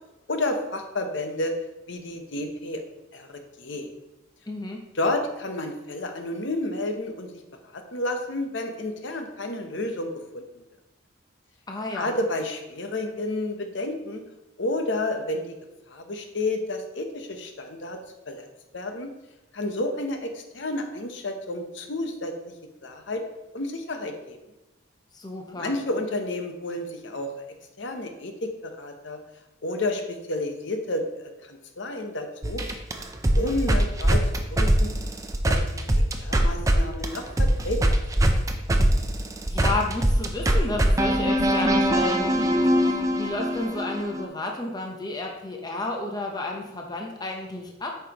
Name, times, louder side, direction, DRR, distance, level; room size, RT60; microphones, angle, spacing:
voice 1, 0.3-1.5 1.9-2.8 3.1-3.9 4.9-7.3 7.7-10.4 11.9-14.2 14.6-15.6 15.9-18.0 18.3-18.5 18.7-19.1 19.5-22.5 22.8-23.2 23.5-24.4 25.5-27.3 27.8-29.2 29.6-32.6 33.3-34.9 35.4-38.0, left 2 dB, 60° left, 5 dB, 0.8 m, -30 dB
voice 2, 4.5-4.8 11.7-12.2 25.1-25.7 39.5-42.6 43.2-48.0, left 2 dB, 20° left, 1 dB, 0.7 m, -31 dB
sound 1, 32.4-36.8 37.0-44.3, right 1 dB, 15° right, 0.5 m, -22 dB
8.7 x 5.5 x 2.9 m, 0.99 s
head